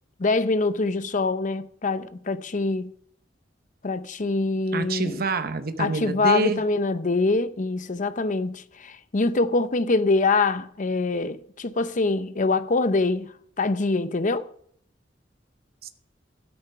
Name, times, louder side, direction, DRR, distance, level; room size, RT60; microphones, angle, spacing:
voice 1, 0.2-2.9 3.8-5.2 5.8-13.3 13.6-14.5, left 3 dB, 45° left, 0.7 m, -24 dB
voice 2, 4.7-6.6 15.8-15.9, right 3 dB, 55° right, 0.9 m, -26 dB
12.5 x 8.7 x 5.6 m
head